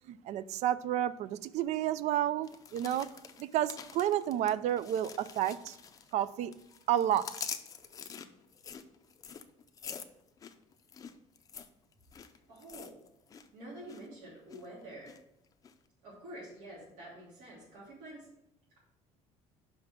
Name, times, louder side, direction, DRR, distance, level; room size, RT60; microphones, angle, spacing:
voice 1, 0.1-3.1 3.4-5.8 6.1-6.5 6.9-7.3, right 11 dB, 55° right, 17 dB, 0.4 m, -31 dB
sound 1, 2.4-6.2 6.5-13.5 13.7-14.1 14.5-15.2 15.6-15.7, left 6 dB, 25° left, 0.5 m, -46 dB
voice 2, 12.5-12.9 13.5-15.1 16.0-18.3, right 1 dB, 80° right, -8 dB, 2.9 m, -48 dB
5.7 x 5.2 x 5.7 m, 0.79 s
cardioid pair, 150°, 13 cm